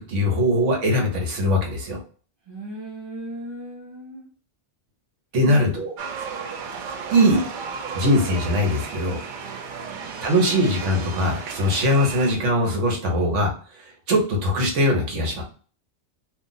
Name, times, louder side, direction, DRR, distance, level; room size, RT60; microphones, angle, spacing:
voice 1, 0.0-2.0 5.3-5.9 7.1-7.5 7.9-9.2 10.2-13.5 13.8-15.4, equal, 75° right, 1 dB, 1.3 m, -21 dB
voice 2, 2.4-4.3 5.4-5.9 9.8-10.2, right 1 dB, 25° right, -5 dB, 0.8 m, -37 dB
sound 1, 6.0-12.3, right 5 dB, 60° right, 0.5 m, -34 dB
2.6 x 2.4 x 3.9 m, 0.41 s
omnidirectional pair, 1.3 m